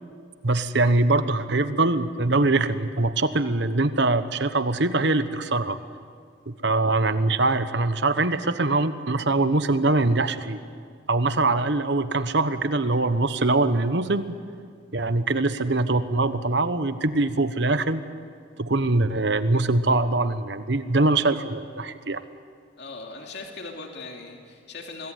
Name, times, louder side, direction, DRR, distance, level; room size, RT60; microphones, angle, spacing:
voice 1, 0.4-5.8 6.5-10.6 11.1-14.4 14.9-18.0 18.6-22.2, right 2 dB, 55° right, 11 dB, 1.2 m, -23 dB
voice 2, 22.8-25.1, left 3 dB, 55° left, 1 dB, 2.8 m, -39 dB
25.5 x 21.0 x 9.5 m, 2.1 s
head